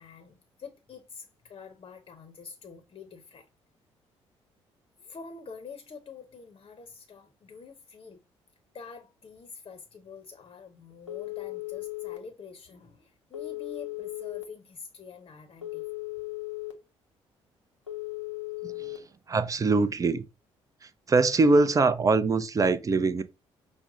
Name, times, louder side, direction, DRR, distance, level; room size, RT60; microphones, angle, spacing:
voice 1, 0.0-3.5 5.0-8.2 8.7-15.9, left 5 dB, 35° left, 0.7 m, -46 dB
Telephone, 11.1-12.2 13.3-14.4 15.6-16.7 17.9-19.0, left 20 dB, 90° left, 0.7 m, -36 dB
voice 2, 18.6-20.2 20.8-23.2, right 3 dB, 25° right, 0.5 m, -24 dB
5.8 x 2.1 x 3.7 m
figure-of-eight pair, 45°, 15 cm